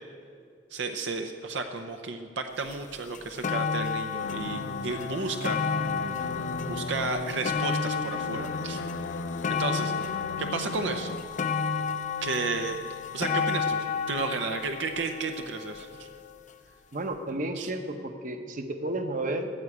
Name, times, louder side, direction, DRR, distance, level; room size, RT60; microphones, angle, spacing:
voice 1, 0.7-5.9 6.7-8.8 9.5-10.1 10.4-11.2 12.2-12.8 13.1-13.8 14.1-16.1 17.6-17.7, right 3 dB, 75° right, 6 dB, 0.7 m, -33 dB
sound 1, 2.7-2.8 3.1-16.3 17.1-17.2, left 5 dB, 45° left, 0.6 m, -32 dB
sound 2, 4.2-11.2, left 2 dB, 85° left, 0.6 m, -37 dB
voice 2, 16.9-19.5, right 2 dB, 45° right, 6 dB, 1.0 m, -32 dB
14.0 x 8.1 x 8.5 m, 2.3 s
head